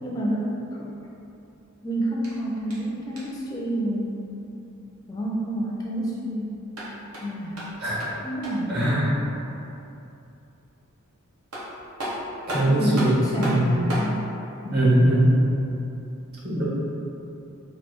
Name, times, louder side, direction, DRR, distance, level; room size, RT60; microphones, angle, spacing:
voice 1, 0.0-0.9 1.8-4.2 5.1-6.6 7.2-7.6 8.2-8.9 12.6-14.3, right 1 dB, 15° left, -4 dB, 0.3 m, -28 dB
sound 1, 2.2-3.5 6.5-8.8 11.0-11.1 11.5-14.1, equal, 85° right, 0.9 m, -34 dB
voice 2, 8.7-9.1 12.5-13.7 14.6-15.4 16.4-16.6, right 1 dB, 50° right, -8 dB, 1.0 m, -21 dB
3.1 x 2.4 x 4.4 m, 2.9 s
head